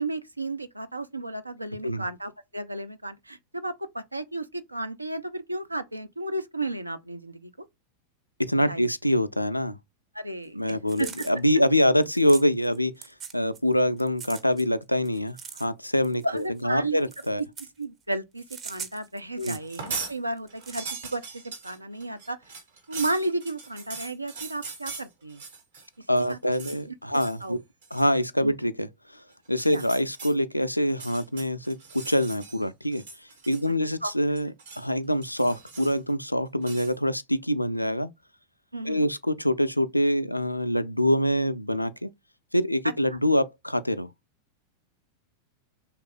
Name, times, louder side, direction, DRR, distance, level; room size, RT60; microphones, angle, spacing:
voice 1, 0.0-7.7 8.6-8.8 10.1-11.1 16.2-17.0 17.8-22.4 22.9-25.4 26.0-26.4 26.9-27.0 27.4-27.6 28.4-28.6 29.7-29.8 34.0-34.1 38.7-39.1 43.1-43.2, right 2 dB, 85° right, 0.4 m, -33 dB
voice 2, 8.4-9.8 10.5-12.9 13.3-17.4 19.4-19.6 26.1-27.6 27.9-28.9 29.5-33.0 33.5-38.1 38.8-42.1 42.5-44.1, equal, 90° left, 0.3 m, -25 dB
sound 1, 10.7-12.8 13.0-13.7 14.0-16.6 17.0-17.8 18.4-20.0 20.4-20.8, right 6 dB, 25° right, 0.6 m, -41 dB
sound 2, 19.6-20.2 20.5-25.9 26.2-26.8 27.1-27.4 27.8-28.1 29.5-30.3 30.9-32.6 32.9-33.8 34.1-34.9 35.2-36.1 36.6-36.9, right 4 dB, 60° right, 1.2 m, -40 dB
3.2 x 2.3 x 3.7 m
figure-of-eight pair, 90°, 0 cm